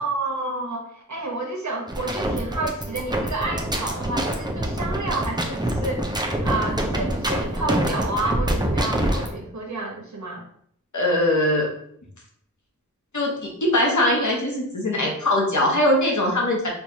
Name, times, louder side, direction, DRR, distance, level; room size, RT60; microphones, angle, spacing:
voice 1, 0.0-6.1 6.4-10.4, right 2 dB, 60° right, 0 dB, 0.9 m, -30 dB
sound 1, 1.9-9.4, right 1 dB, 15° right, 0.5 m, -25 dB
voice 2, 10.9-11.7 13.1-16.7, left 1 dB, 65° left, -1 dB, 1.0 m, -21 dB
4.5 x 2.4 x 2.7 m, 0.68 s
wide cardioid pair, 45°, 32 cm